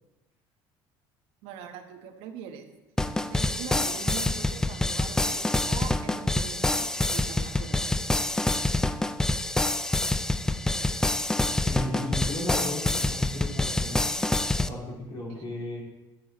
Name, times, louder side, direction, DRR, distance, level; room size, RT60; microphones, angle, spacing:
voice 1, 1.4-2.8 3.3-7.9 15.3-15.5, right 8 dB, 75° right, 5 dB, 1.3 m, -42 dB
sound 1, 3.0-14.7, left 2 dB, 5° left, 0.3 m, -26 dB
voice 2, 11.5-14.1 14.5-15.8, left 1 dB, 45° left, -3 dB, 3.2 m, -35 dB
10.5 x 7.9 x 4.2 m, 1.1 s
cardioid pair, 140°, 9 cm